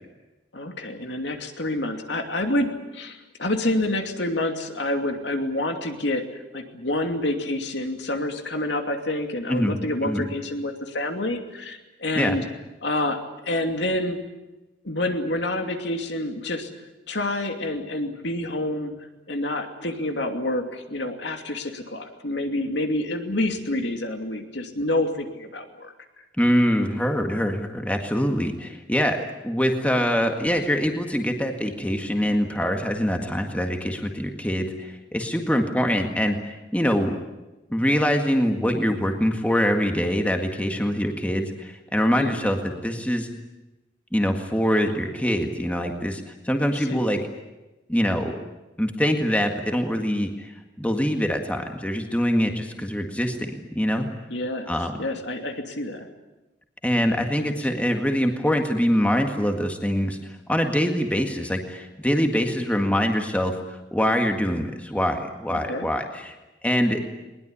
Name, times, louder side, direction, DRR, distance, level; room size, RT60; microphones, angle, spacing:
voice 1, 0.5-6.2 6.5-12.4 12.8-13.2 13.4-14.2 14.8-16.7 17.1-18.9 19.3-25.9 42.2-42.4 46.7-47.0 54.3-54.7 55.0-56.1 57.3-57.5 65.5-65.9, left 1 dB, 75° left, 5 dB, 2.7 m, -28 dB
voice 2, 26.4-29.2 29.4-37.1 37.7-43.3 44.1-47.2 47.9-48.4 48.8-50.5 50.8-54.1 54.7-54.9 56.8-60.2 60.5-66.4 66.6-67.0, equal, 10° left, 4 dB, 1.8 m, -24 dB
21.5 x 20.5 x 10.0 m, 1.1 s
head